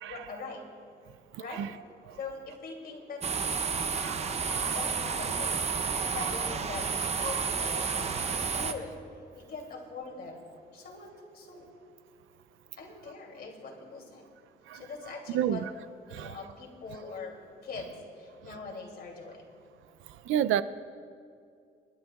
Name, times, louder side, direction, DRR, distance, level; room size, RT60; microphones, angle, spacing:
voice 1, 0.1-0.6 1.3-1.6 2.2-8.9 9.3-10.4 10.7-11.7 12.8-14.3 14.7-15.6 16.1-17.4 17.6-19.5, left 4 dB, 50° left, 0 dB, 2.7 m, -43 dB
voice 2, 1.3-1.7 2.1-2.2 4.0-4.2 4.5-4.8 7.2-7.5 8.2-8.3 14.7-14.8 15.3-15.7 16.1-16.4 20.1-20.6, right 10 dB, 90° right, 14 dB, 0.5 m, -31 dB
sound 1, 3.2-8.7, right 5 dB, 35° right, 0.7 m, -31 dB
28.0 x 11.5 x 2.4 m, 2.3 s
cardioid pair, 135°, 20 cm